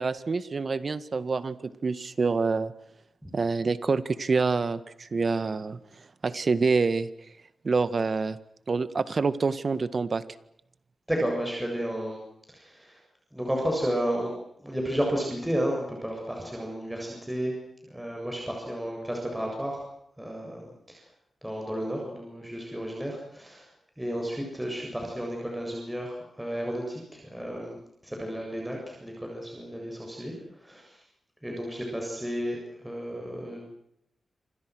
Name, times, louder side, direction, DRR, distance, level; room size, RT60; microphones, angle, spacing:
voice 1, 0.0-2.7 3.3-5.8 6.2-7.1 7.6-8.4 8.7-10.2, right 4 dB, 45° right, 14 dB, 1.7 m, -26 dB
voice 2, 11.1-12.2 12.5-13.0 13.3-14.3 14.6-17.6 17.9-19.9 20.2-21.0 21.4-23.7 24.0-27.8 28.0-31.0 31.4-33.7, equal, 5° right, 0 dB, 7.7 m, -32 dB
28.0 x 26.0 x 6.4 m, 0.74 s
wide cardioid pair, 100°, 0 cm